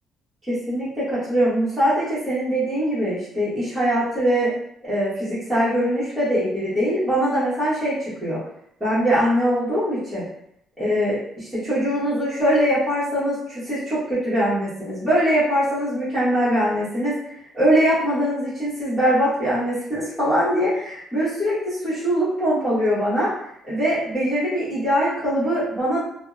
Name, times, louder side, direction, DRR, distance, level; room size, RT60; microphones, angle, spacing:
voice 1, 0.5-4.5 4.8-8.4 8.8-10.2 10.8-17.2 17.5-23.3 23.7-26.0, equal, 10° right, -13 dB, 1.1 m, -22 dB
2.7 x 2.0 x 2.4 m, 0.71 s
cardioid pair, 130°, 0 cm